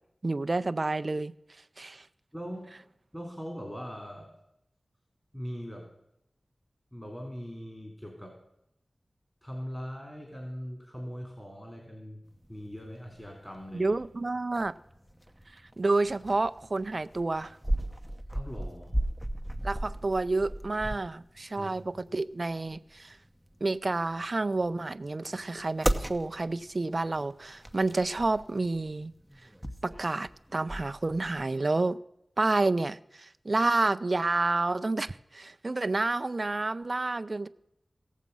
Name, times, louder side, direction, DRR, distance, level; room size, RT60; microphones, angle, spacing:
voice 1, 0.2-1.3 1.8-2.0 13.7-14.7 15.8-17.6 19.6-23.2 23.6-29.1 29.8-32.0 32.4-37.5, right 2 dB, 50° right, 12 dB, 0.5 m, -29 dB
voice 2, 2.3-2.8 3.1-4.3 5.3-5.9 6.9-8.3 9.4-12.2 12.5-13.9 18.3-18.9 21.6-21.7, equal, 15° left, 1 dB, 3.2 m, -40 dB
sound 1, 12.3-31.4, right 1 dB, 5° right, 0.9 m, -37 dB
17.5 x 7.3 x 5.5 m, 0.81 s
wide cardioid pair, 50°, 0 cm